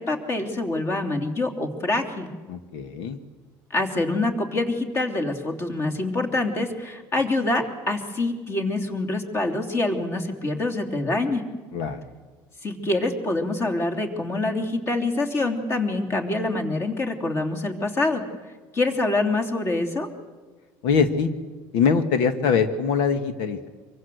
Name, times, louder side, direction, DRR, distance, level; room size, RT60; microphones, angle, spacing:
voice 1, 0.0-2.3 3.7-11.4 12.6-18.2 18.7-20.1, left 2 dB, 30° left, 5 dB, 3.3 m, -25 dB
voice 2, 2.5-3.2 11.7-12.0 20.8-21.3 21.7-23.7, left 6 dB, 75° left, 9 dB, 1.7 m, -23 dB
26.0 x 24.0 x 8.0 m, 1.4 s
cardioid pair, 150°, 9 cm